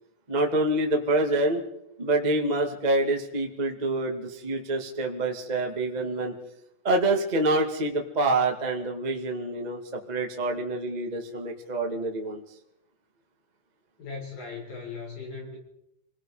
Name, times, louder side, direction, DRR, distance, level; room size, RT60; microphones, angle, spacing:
voice 1, 0.3-1.6 2.0-6.3 6.8-12.4, right 2 dB, 25° right, 2 dB, 0.9 m, -26 dB
voice 2, 14.0-15.6, left 4 dB, 60° left, -2 dB, 8.7 m, -38 dB
28.5 x 19.0 x 5.0 m, 0.84 s
omnidirectional pair, 4.9 m